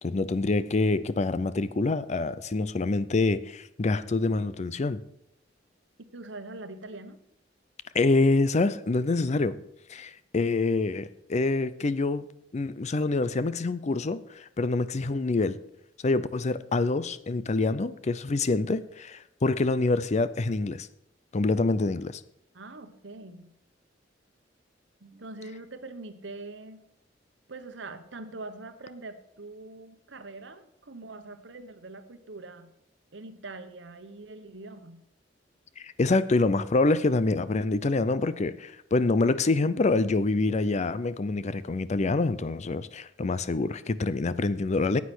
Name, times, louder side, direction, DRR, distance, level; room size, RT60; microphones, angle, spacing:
voice 1, 0.0-5.0 7.9-9.6 9.9-12.3 12.5-15.6 16.0-20.9 21.3-22.2 35.8-45.0, left 3 dB, 40° left, 15 dB, 0.5 m, -26 dB
voice 2, 6.0-7.2 22.5-23.5 25.0-26.8 27.5-32.7 33.1-35.0, right 2 dB, 75° right, 9 dB, 1.1 m, -43 dB
9.8 x 8.4 x 6.2 m, 0.74 s
head